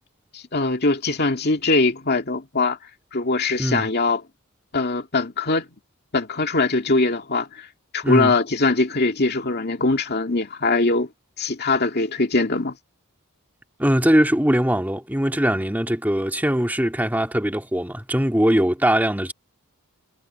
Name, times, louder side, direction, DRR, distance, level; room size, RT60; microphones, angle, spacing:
voice 1, 0.3-2.8 3.1-4.2 4.7-5.7 6.1-7.7 7.9-11.1 11.4-12.7, left 3 dB, 45° left, 2.3 m, -22 dB
voice 2, 13.8-19.3, equal, 10° right, 2.4 m, -21 dB
head